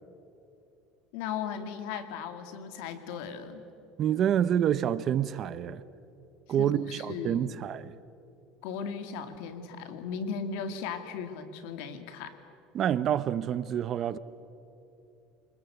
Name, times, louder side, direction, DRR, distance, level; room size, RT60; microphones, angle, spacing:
voice 1, 1.1-3.7 6.6-7.6 8.6-12.3, left 6 dB, 75° left, 8 dB, 2.3 m, -37 dB
voice 2, 4.0-5.8 6.5-7.9 12.7-14.2, right 10 dB, 40° right, 16 dB, 0.8 m, -27 dB
26.5 x 20.0 x 8.1 m, 2.7 s
cardioid pair, 135°, 0 cm